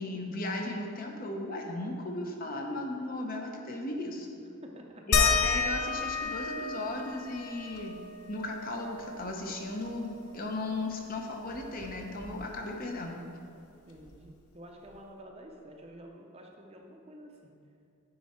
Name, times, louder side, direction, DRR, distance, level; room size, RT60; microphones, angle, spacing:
voice 1, 0.0-4.3 5.1-8.0 8.3-13.2, left 2 dB, 40° left, 1 dB, 0.7 m, -36 dB
voice 2, 4.6-5.0 13.9-17.5, right 1 dB, 25° right, 1 dB, 0.6 m, -49 dB
sound 1, 5.1-10.3 10.6-10.7 11.0-12.8 14.1-14.2 14.9-15.0, left 5 dB, 75° left, 0.6 m, -32 dB
9.4 x 4.3 x 4.3 m, 2.6 s
head